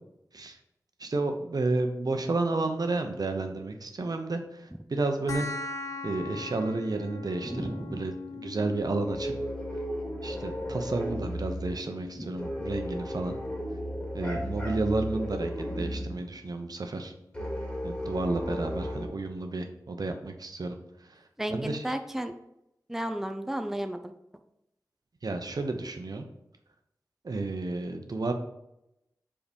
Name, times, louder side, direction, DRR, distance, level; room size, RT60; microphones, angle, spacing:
voice 1, 1.0-5.5 6.0-9.3 10.2-13.3 14.1-17.1 17.8-20.7 21.0-21.2 21.5-22.0 25.2-26.3 27.2-28.3, right 2 dB, 65° right, 5 dB, 0.9 m, -31 dB
sound 1, 5.3-16.3, left 3 dB, 50° left, 0.9 m, -43 dB
voice 2, 7.4-8.0 12.2-12.3 14.4-14.5 21.4-22.3 22.9-24.1, right 1 dB, 5° right, 7 dB, 0.6 m, -33 dB
sound 2, 9.0-11.8 12.4-16.2 17.3-19.1, equal, 15° left, 2.3 m, -34 dB
5.0 x 4.9 x 5.3 m, 0.84 s
wide cardioid pair, 50°, 7 cm